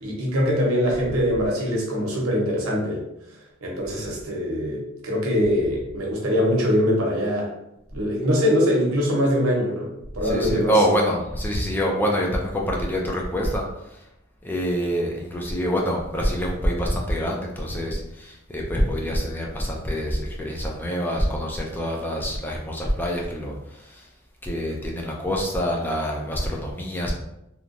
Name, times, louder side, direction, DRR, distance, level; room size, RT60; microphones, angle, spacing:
voice 1, 0.0-3.0 3.6-7.5 7.9-10.8, equal, 85° right, -2 dB, 0.8 m, -23 dB
voice 2, 10.2-13.6 14.4-23.5 23.8-24.1 24.4-27.1, equal, 10° left, -1 dB, 0.3 m, -25 dB
2.9 x 2.2 x 2.5 m, 0.86 s
head